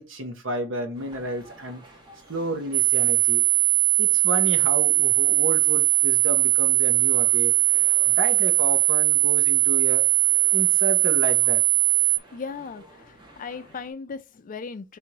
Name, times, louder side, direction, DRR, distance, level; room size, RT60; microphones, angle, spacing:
voice 1, 0.0-1.8 2.3-3.4 4.0-7.6 8.0-10.0 10.5-11.6, right 1 dB, 85° right, 1.0 m, -31 dB
sound 1, 0.9-13.9, right 1 dB, 25° right, 1.1 m, -51 dB
sound 2, 2.7-12.2, right 18 dB, 55° right, 0.3 m, -20 dB
voice 2, 12.3-15.0, left 5 dB, 45° left, 0.4 m, -37 dB
3.4 x 2.9 x 4.6 m
head